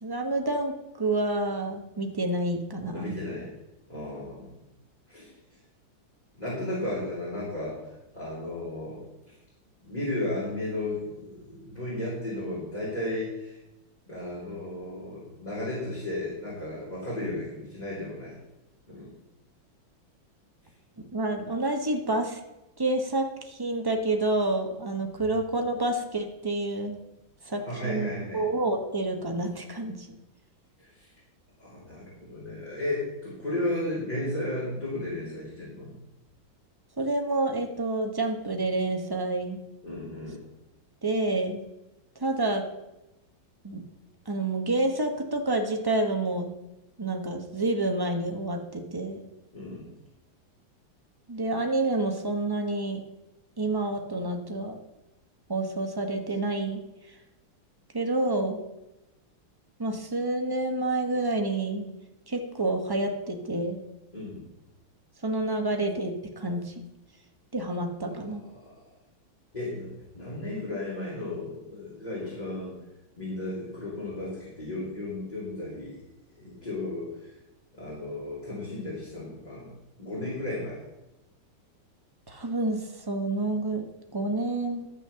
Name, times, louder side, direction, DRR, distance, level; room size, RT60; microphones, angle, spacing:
voice 1, 0.0-3.2 21.0-22.4 22.8-27.0 27.5-30.2 37.0-39.6 41.0-41.6 42.2-42.6 43.6-43.8 44.3-46.5 47.0-49.2 51.3-53.0 53.6-54.8 55.5-56.8 57.9-58.6 59.8-61.9 62.3-63.8 65.2-66.7 67.5-68.4 82.3-84.9, right 2 dB, 15° right, 4 dB, 0.7 m, -28 dB
voice 2, 2.9-3.5 3.9-4.5 5.1-5.3 6.4-7.8 8.1-9.0 9.8-13.6 14.1-18.3 18.9-19.1 27.5-28.4 30.8-31.1 31.6-35.9 39.8-40.4 49.5-49.9 64.1-64.4 68.0-68.7 69.5-72.7 73.2-76.0 76.4-77.3 77.8-79.7 80.0-80.8, left 1 dB, 20° left, -9 dB, 3.8 m, -34 dB
12.0 x 6.4 x 6.9 m, 0.96 s
omnidirectional pair, 2.3 m